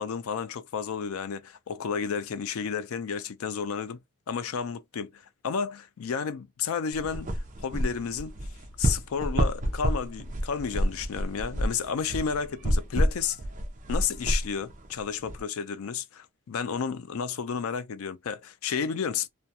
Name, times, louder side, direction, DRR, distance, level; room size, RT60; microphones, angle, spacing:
voice 1, 0.0-4.0 4.3-7.3 7.6-8.3 8.8-13.4 13.9-19.3, left 6 dB, 80° left, 0.4 m, -32 dB
sound 1, 6.9-15.4, equal, 35° right, 0.5 m, -29 dB
2.3 x 2.2 x 2.7 m
head